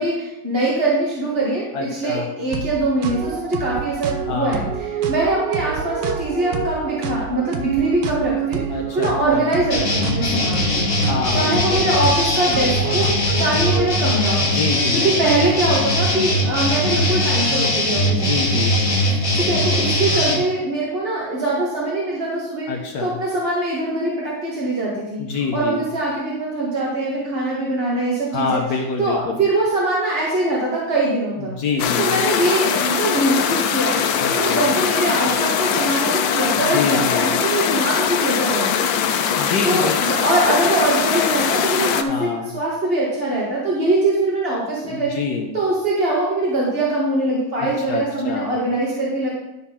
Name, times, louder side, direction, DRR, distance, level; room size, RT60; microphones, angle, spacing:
voice 1, 0.0-8.7 8.9-10.9 11.3-14.6 14.9-18.4 19.1-25.2 25.5-28.6 29.0-31.5 32.0-34.0 34.3-38.9 39.6-45.2 45.5-49.3, right 2 dB, 30° right, -6 dB, 2.0 m, -22 dB
voice 2, 1.7-2.3 4.3-4.7 8.7-9.5 11.0-11.9 14.4-15.1 18.1-18.8 22.7-23.2 25.2-25.9 28.3-29.4 31.4-32.2 34.2-34.6 36.5-37.3 39.3-40.0 42.1-42.6 44.8-45.5 47.6-48.5, left 5 dB, 60° left, 2 dB, 1.4 m, -26 dB
sound 1, 2.5-13.9, right 7 dB, 65° right, 1.4 m, -28 dB
sound 2, 9.7-20.4, left 1 dB, 45° left, 1.8 m, -20 dB
sound 3, 31.8-42.0, left 7 dB, 80° left, 1.3 m, -21 dB
11.0 x 4.3 x 5.6 m, 0.95 s
omnidirectional pair, 2.1 m